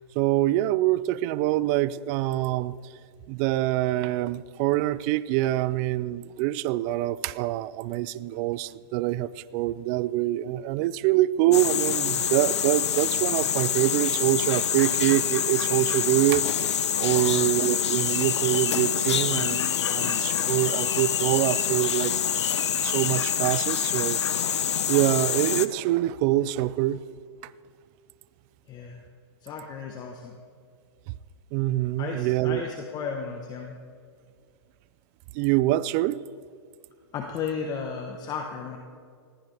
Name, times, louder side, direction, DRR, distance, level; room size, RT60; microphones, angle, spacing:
voice 1, 0.2-2.8 3.3-16.5 17.0-22.1 22.8-24.2 24.9-27.0 31.5-32.6 35.3-36.3, right 15 dB, 40° right, 0.4 m, -25 dB
sound 1, 11.5-25.7, left 9 dB, 90° left, 0.8 m, -26 dB
voice 2, 17.2-17.5 28.7-29.0 29.4-30.4 32.0-33.8 37.1-38.8, left 6 dB, 30° left, 1.2 m, -34 dB
20.5 x 15.5 x 3.5 m
hypercardioid pair, 135°, 14 cm